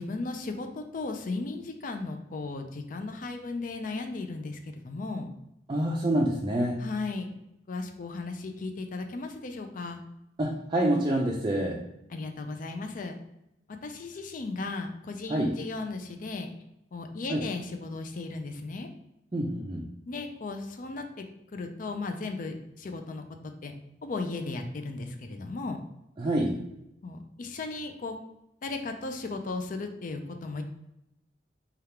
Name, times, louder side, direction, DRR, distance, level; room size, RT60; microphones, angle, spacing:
voice 1, 0.0-5.3 6.8-7.3 7.7-10.0 12.1-13.2 13.8-16.5 16.9-18.9 20.1-21.2 21.5-23.2 23.6-23.7 24.0-25.8 27.0-28.2 28.6-30.6, left 3 dB, 45° left, 6 dB, 0.4 m, -36 dB
voice 2, 5.7-6.8 10.4-11.8 15.3-15.6 17.3-17.5 19.3-19.9 26.2-26.6, right 1 dB, 25° right, -2 dB, 0.4 m, -27 dB
3.4 x 2.4 x 4.3 m, 0.85 s
head